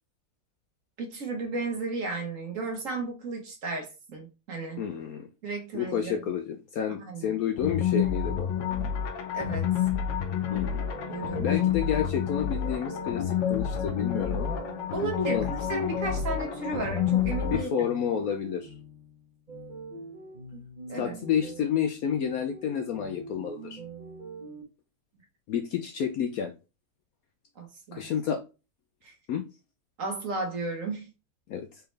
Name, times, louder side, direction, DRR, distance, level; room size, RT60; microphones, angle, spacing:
voice 1, 1.0-4.8 5.4-6.1 7.0-7.3 9.3-9.7 11.1-11.5 14.9-17.9 20.5-20.6 20.9-21.2 27.5-28.1 29.0-29.1 30.0-31.1, right 3 dB, 50° right, 1.5 m, -34 dB
voice 2, 4.8-5.3 5.7-8.5 10.5-10.9 11.4-14.6 15.3-15.4 17.4-18.7 21.0-23.8 25.5-26.5 27.9-28.4 29.3-29.4 31.5-31.8, left 8 dB, 70° left, 0.9 m, -30 dB
sound 1, 7.6-17.6, left 9 dB, 85° left, 1.5 m, -29 dB
sound 2, 10.9-24.6, right 2 dB, 30° right, 1.1 m, -44 dB
4.2 x 3.8 x 3.3 m
omnidirectional pair, 1.9 m